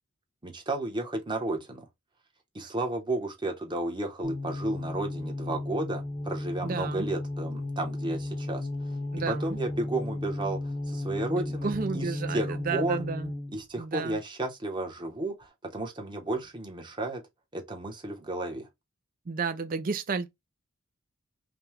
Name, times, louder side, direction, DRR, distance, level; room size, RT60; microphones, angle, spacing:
voice 1, 0.4-1.9 2.5-8.7 9.3-13.0 13.5-17.2 17.5-18.7, right 2 dB, 20° right, 1.0 m, -33 dB
sound 1, 4.2-13.6, left 1 dB, 25° left, 0.8 m, -34 dB
voice 2, 6.6-7.1 9.1-9.6 11.3-13.3 13.8-14.2 19.3-20.3, right 5 dB, 40° right, 0.5 m, -32 dB
5.2 x 2.3 x 3.0 m
head